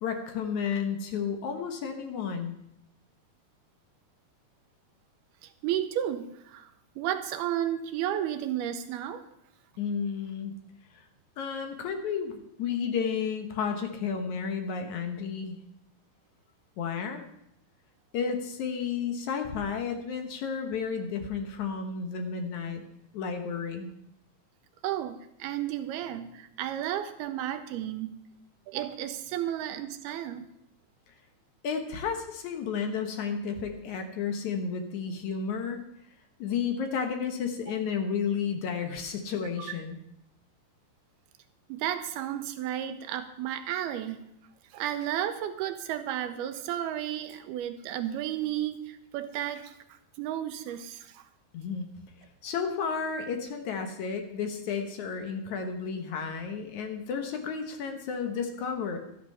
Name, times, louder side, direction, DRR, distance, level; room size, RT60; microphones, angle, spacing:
voice 1, 0.0-2.5 9.8-10.6 10.9-11.0 11.4-15.6 16.8-17.2 18.1-22.8 23.1-23.9 31.6-35.8 36.4-40.0 51.5-51.9 52.4-59.0, left 6 dB, 65° left, 5 dB, 1.9 m, -32 dB
voice 2, 5.4-9.3 24.8-28.2 28.7-30.5 37.7-37.8 39.6-39.8 41.7-44.3 44.7-51.3, right 11 dB, 80° right, 9 dB, 2.5 m, -33 dB
12.5 x 12.0 x 5.5 m, 0.78 s
omnidirectional pair, 4.8 m